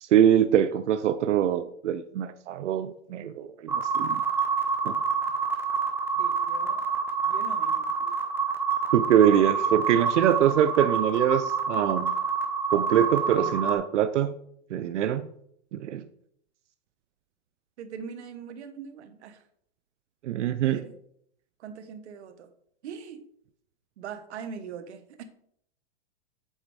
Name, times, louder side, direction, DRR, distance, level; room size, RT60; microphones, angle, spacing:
voice 1, 0.0-4.2 4.8-4.9 8.9-12.1 12.7-14.3 14.7-15.3 15.7-16.0 20.2-20.8, right 10 dB, 90° right, 10 dB, 0.6 m, -23 dB
sound 1, 3.7-13.8, right 5 dB, 5° right, 0.6 m, -27 dB
voice 2, 6.2-6.9 7.2-7.8 9.4-9.5 17.8-19.4 20.6-20.9 21.6-22.5 22.8-23.2 24.0-25.2, right 6 dB, 70° right, 9 dB, 1.1 m, -41 dB
7.8 x 4.0 x 4.7 m, 0.68 s
hypercardioid pair, 135°, 35 cm